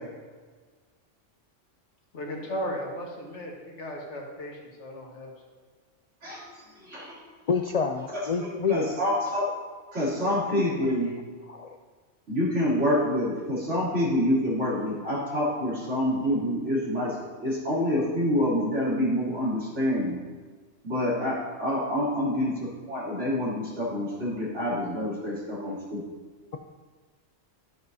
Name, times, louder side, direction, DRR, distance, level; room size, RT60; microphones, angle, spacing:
voice 1, 2.1-5.3, equal, 70° left, -1 dB, 1.8 m, -36 dB
voice 2, 6.8-7.2 7.9-8.1 8.4-9.5 9.9-11.1 12.3-17.2 17.4-20.2 20.8-22.5 22.9-26.0, left 1 dB, 70° right, -8 dB, 3.3 m, -27 dB
voice 3, 7.5-8.8 10.5-10.6 11.5-11.8, left 6 dB, 90° left, 4 dB, 0.3 m, -27 dB
11.5 x 7.8 x 2.7 m, 1.4 s
omnidirectional pair, 1.2 m